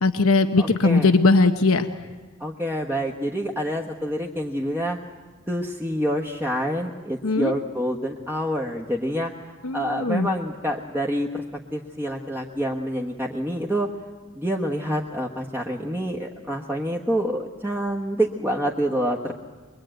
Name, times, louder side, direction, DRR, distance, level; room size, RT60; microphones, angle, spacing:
voice 1, 0.0-1.9 7.2-7.5 9.6-10.3, left 3 dB, 75° left, 9 dB, 0.9 m, -19 dB
voice 2, 0.6-1.1 2.4-5.0 5.5-9.3 9.7-11.4 11.7-13.9 14.3-19.3, equal, 10° right, -1 dB, 1.3 m, -27 dB
23.5 x 23.5 x 9.1 m, 1.3 s
head